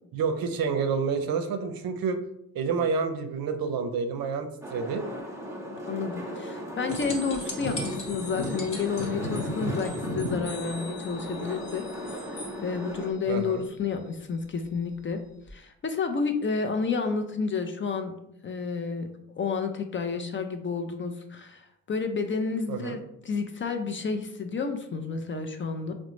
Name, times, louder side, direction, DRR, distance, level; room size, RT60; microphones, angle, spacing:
voice 1, 0.1-2.2 2.5-5.0 13.3-13.6 22.7-23.0, right 5 dB, 60° right, 7 dB, 0.6 m, -28 dB
sound 1, 4.6-13.1, equal, 5° right, 0.7 m, -37 dB
voice 2, 5.9-11.9 12.2-15.2 15.5-18.1 18.4-19.1 19.4-23.0 23.2-25.9, left 5 dB, 30° left, 6 dB, 0.4 m, -30 dB
sound 2, 6.9-12.5 15.5-15.6, left 1 dB, 50° left, 1.2 m, -35 dB
3.8 x 2.1 x 3.1 m, 0.78 s
supercardioid pair, 65°, 39 cm